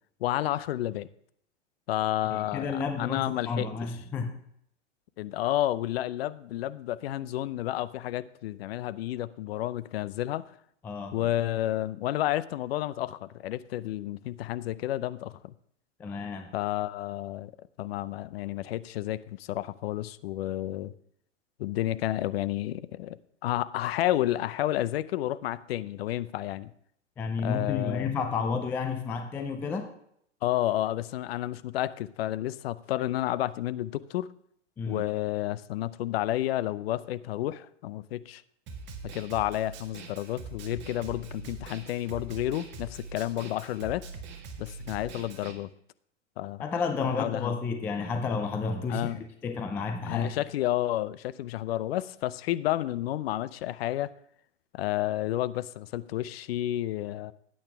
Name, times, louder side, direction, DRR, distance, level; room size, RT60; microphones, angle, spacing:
voice 1, 0.2-1.1 1.9-3.7 5.2-10.4 11.1-15.5 16.5-17.5 17.8-20.9 21.6-26.7 27.4-28.1 30.4-34.3 34.9-38.4 39.1-44.1 44.6-45.7 46.4-46.6 47.2-47.6 48.9-49.2 50.1-54.1 54.7-57.3, left 14 dB, 55° left, 17 dB, 0.6 m, -31 dB
voice 2, 2.3-4.4 10.8-11.2 16.0-16.5 27.2-29.9 34.8-35.0 46.6-50.3, left 5 dB, 5° left, 6 dB, 0.3 m, -31 dB
Snare drum, 38.7-45.5, right 4 dB, 30° right, 1.7 m, -43 dB
12.0 x 8.8 x 3.4 m, 0.68 s
hypercardioid pair, 115°, 36 cm